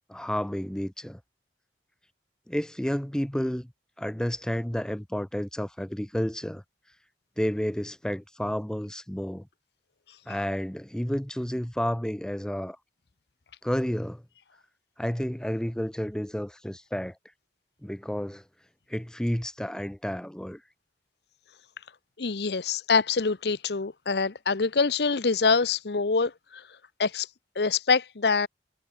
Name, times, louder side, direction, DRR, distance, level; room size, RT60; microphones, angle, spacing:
voice 1, 0.1-1.2 2.5-3.7 4.0-6.6 7.4-9.5 10.3-12.8 13.6-14.2 15.0-17.2 17.8-18.4 18.9-20.6, equal, 5° left, 0.5 m, -31 dB
voice 2, 22.2-26.6 27.0-27.3 27.6-28.5, left 4 dB, 65° left, 0.8 m, -25 dB
head